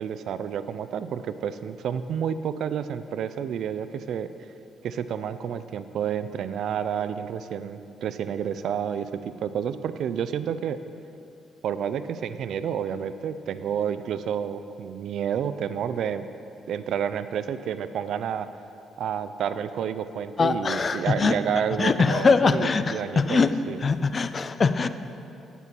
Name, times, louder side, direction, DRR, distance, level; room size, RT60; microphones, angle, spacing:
voice 1, 0.0-4.3 4.8-10.8 11.6-16.3 16.7-18.5 19.0-23.8, right 8 dB, 70° right, 12 dB, 0.3 m, -30 dB
voice 2, 20.4-21.4 21.8-24.9, left 4 dB, 40° left, 12 dB, 0.4 m, -22 dB
8.2 x 6.9 x 4.4 m, 2.7 s
cardioid pair, 90°, 0 cm